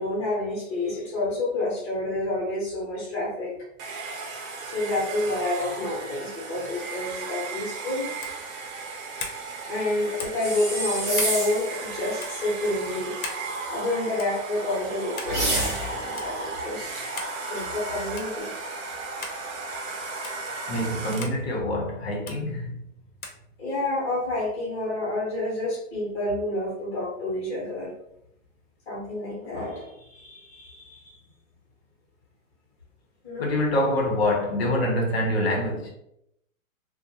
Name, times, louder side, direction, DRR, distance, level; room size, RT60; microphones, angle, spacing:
voice 1, 0.0-3.5 4.7-8.1 9.6-13.1 13.7-17.0 17.5-18.5 23.6-27.9 28.9-31.2 33.2-33.5, left 2 dB, 20° left, 0.9 m, -29 dB
Domestic sounds home sounds, 3.8-21.5, right 3 dB, 70° right, 0.7 m, -35 dB
sound 1, 8.2-8.4 9.2-9.4 10.2-10.5 11.1-11.4 12.2-12.4 13.2-13.5 14.2-14.4 15.2-15.4 16.2-16.3 17.2-17.4 18.2-18.4 19.2-19.4 20.2-20.4 21.2-21.4 22.3-22.4 23.2-23.4, left 4 dB, 85° left, 0.9 m, -36 dB
sound 2, 10.4-11.7 15.2-16.1, right 1 dB, 20° right, 0.5 m, -27 dB
voice 2, 20.7-22.8 33.4-35.9, left 1 dB, 45° left, 0.8 m, -25 dB
2.5 x 2.1 x 2.8 m
hypercardioid pair, 170°, 41 cm